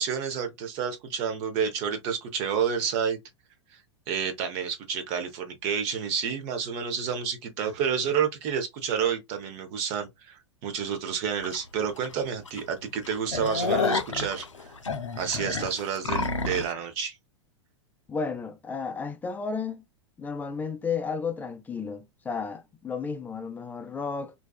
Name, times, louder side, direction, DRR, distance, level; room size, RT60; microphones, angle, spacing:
voice 1, 0.0-3.2 3.7-3.8 4.1-14.7 15.2-17.2, right 7 dB, 40° right, 0.7 m, -29 dB
sound 1, 11.4-11.6 12.0-12.1 12.5-12.6 12.9-16.7, left 4 dB, 85° left, 0.4 m, -29 dB
voice 2, 18.1-19.8 20.2-24.3, left 5 dB, 10° left, 0.4 m, -33 dB
2.6 x 2.3 x 2.2 m
figure-of-eight pair, 95°, 16 cm